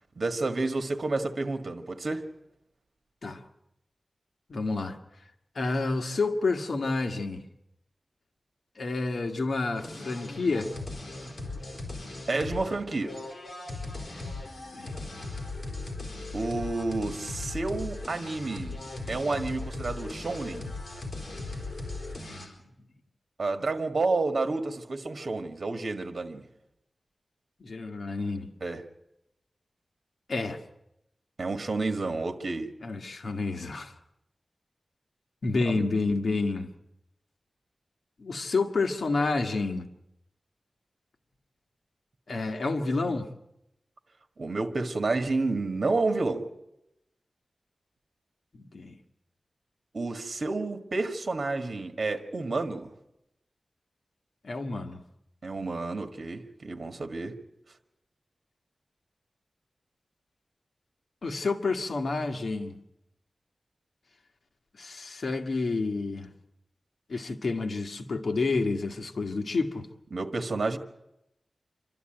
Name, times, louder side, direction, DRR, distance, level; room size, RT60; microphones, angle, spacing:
voice 1, 0.2-2.2 12.3-13.2 16.3-20.7 23.4-26.4 28.6-28.8 31.4-32.7 35.7-35.9 44.4-46.4 49.9-52.9 55.4-57.3 70.1-70.8, right 3 dB, 60° right, 1.7 m, -30 dB
voice 2, 4.5-5.0 5.5-7.4 8.8-10.7 14.7-14.9 22.2-22.5 27.6-28.5 30.3-30.6 32.8-33.9 35.4-36.7 38.2-39.9 42.3-43.3 48.5-49.0 54.4-55.0 61.2-62.8 64.8-66.3 67.1-69.9, left 3 dB, 75° left, 1.6 m, -29 dB
sound 1, 9.8-22.5, left 2 dB, 50° left, 5.0 m, -38 dB
27.0 x 12.5 x 9.0 m
wide cardioid pair, 105°, 0 cm